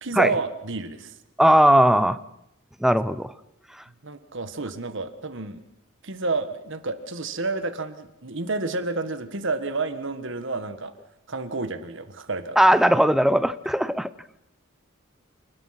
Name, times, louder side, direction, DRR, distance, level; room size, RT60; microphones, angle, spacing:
voice 1, 0.0-1.1 4.0-5.6 6.0-10.9 11.3-12.6, right 3 dB, 60° right, 10 dB, 1.5 m, -30 dB
voice 2, 1.4-2.2 2.8-3.3 12.6-14.1, equal, ahead, 13 dB, 0.8 m, -18 dB
29.0 x 20.0 x 5.9 m, 0.81 s
head